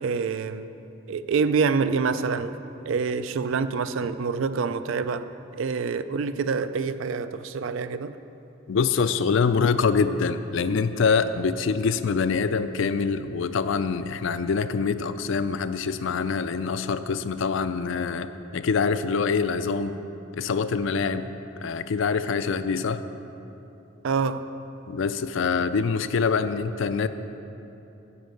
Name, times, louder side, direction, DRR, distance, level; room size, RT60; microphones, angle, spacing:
voice 1, 0.0-0.7 1.1-2.6 2.9-5.3 5.6-8.1 24.0-24.4, right 5 dB, 70° right, 12 dB, 0.4 m, -26 dB
voice 2, 8.7-20.0 20.3-21.3 21.6-23.0 24.9-27.1, left 5 dB, 65° left, 12 dB, 0.4 m, -25 dB
10.0 x 5.2 x 7.7 m, 3.0 s
head